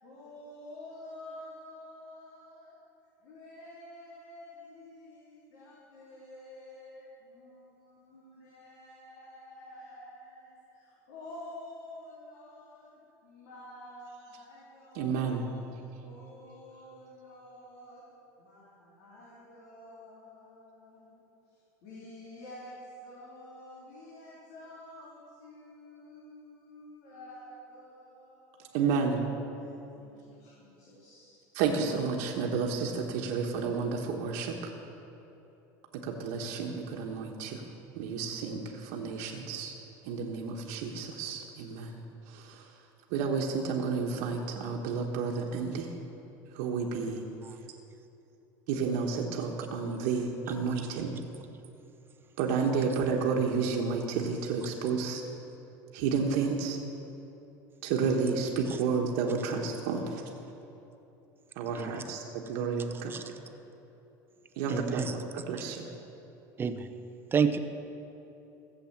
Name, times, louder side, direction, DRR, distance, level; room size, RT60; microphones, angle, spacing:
voice 1, 0.0-2.8 3.2-15.5 16.0-18.0 18.4-21.2 21.5-29.3 29.6-31.4, left 1 dB, 75° left, -7 dB, 3.6 m, -49 dB
voice 2, 14.9-15.5 28.7-29.2 31.5-34.7 36.0-39.8 40.0-42.0 42.3-42.7 43.1-45.9 46.5-47.2 48.7-51.3 52.4-55.2 55.9-56.8 57.8-60.3 61.6-63.2 64.6-65.1 65.3-65.9, right 5 dB, 70° right, 0 dB, 1.3 m, -31 dB
voice 3, 64.7-65.2 66.6-66.9 67.3-67.6, right 6 dB, 25° right, 8 dB, 0.7 m, -29 dB
15.0 x 7.7 x 7.3 m, 3.0 s
supercardioid pair, 130°, 9 cm